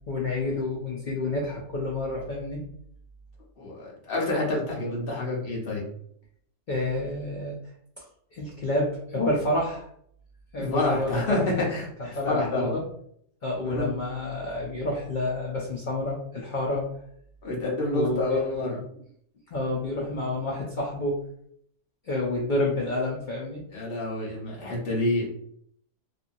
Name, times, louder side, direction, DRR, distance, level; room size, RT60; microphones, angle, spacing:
voice 1, 0.1-2.6 6.7-7.6 8.3-9.9 10.5-11.6 12.0-12.8 13.4-16.9 17.9-18.4 19.5-21.2 22.0-23.6, left 2 dB, 70° left, -2 dB, 0.4 m, -29 dB
voice 2, 3.6-5.8 10.6-12.8 13.6-13.9 17.4-18.8 23.7-25.3, left 2 dB, 45° left, -3 dB, 1.0 m, -28 dB
2.8 x 2.5 x 2.5 m, 0.67 s
omnidirectional pair, 1.5 m